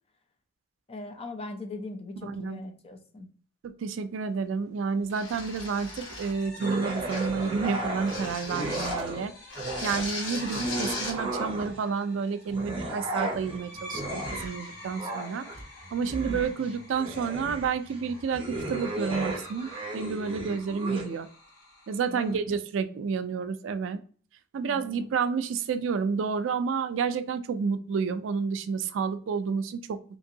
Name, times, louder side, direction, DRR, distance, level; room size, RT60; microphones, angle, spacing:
voice 1, 0.9-3.3 16.3-16.4 22.1-22.4 24.6-25.1, left 2 dB, 30° left, 5 dB, 0.5 m, -39 dB
voice 2, 2.3-2.6 3.6-9.3 9.8-15.5 15.9-21.3 21.9-24.0 24.5-30.0, right 5 dB, 75° right, 11 dB, 0.3 m, -30 dB
sound 1, 5.1-6.5 7.1-7.4 8.1-9.1 9.5-11.2, left 2 dB, 85° left, 1.1 m, -37 dB
sound 2, 5.1-22.4, left 2 dB, 55° left, 0.8 m, -48 dB
sound 3, 6.6-9.3 9.5-11.9 12.4-21.1, right 1 dB, 30° right, 0.6 m, -35 dB
2.8 x 2.6 x 2.7 m, 0.43 s
head